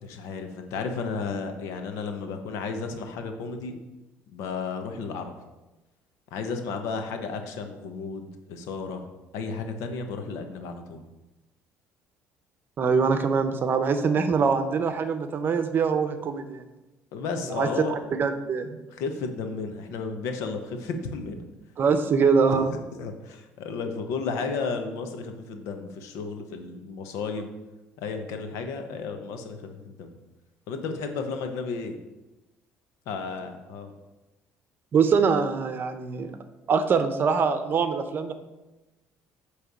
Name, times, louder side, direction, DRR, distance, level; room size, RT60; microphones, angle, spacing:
voice 1, 0.0-3.8 4.3-5.3 6.3-9.0 9.3-11.0 17.1-18.0 18.9-21.4 22.5-22.7 22.9-27.5 28.0-30.1 30.7-32.0 33.1-33.9, left 4 dB, 80° left, 6 dB, 1.0 m, -33 dB
voice 2, 12.8-16.6 17.5-18.8 21.8-22.7 34.9-36.3 36.7-38.3, right 5 dB, 45° right, 9 dB, 0.8 m, -23 dB
8.2 x 3.3 x 6.1 m, 1.1 s
cardioid pair, 100°, 5 cm